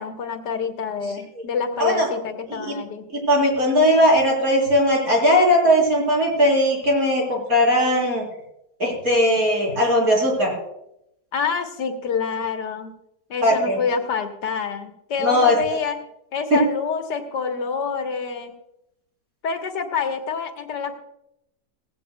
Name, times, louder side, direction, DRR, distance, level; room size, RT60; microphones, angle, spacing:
voice 1, 0.0-3.1 11.3-12.9 13.3-16.0 16.3-18.5 19.4-21.0, left 6 dB, 80° left, 5 dB, 1.9 m, -27 dB
voice 2, 3.1-8.2 8.8-10.5 13.4-13.8 15.2-15.8 16.5-16.6, equal, 55° right, -1 dB, 4.5 m, -19 dB
17.0 x 16.0 x 2.2 m, 0.81 s
omnidirectional pair, 1.8 m